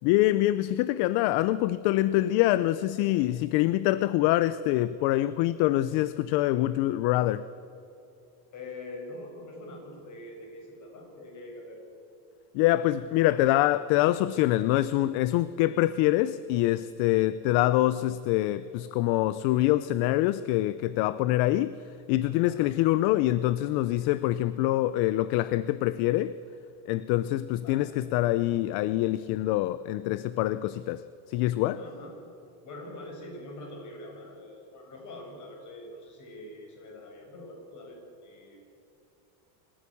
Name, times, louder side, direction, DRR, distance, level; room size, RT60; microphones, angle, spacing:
voice 1, 0.0-7.4 12.5-21.7 22.1-26.3 26.9-31.0 31.3-31.8, left 15 dB, 55° left, 16 dB, 0.7 m, -25 dB
voice 2, 8.5-11.8 22.4-22.7 27.6-27.9 31.7-32.3 32.6-38.6, left 1 dB, 35° left, 2 dB, 6.5 m, -44 dB
26.5 x 14.5 x 8.5 m, 2.7 s
supercardioid pair, 140°, 47 cm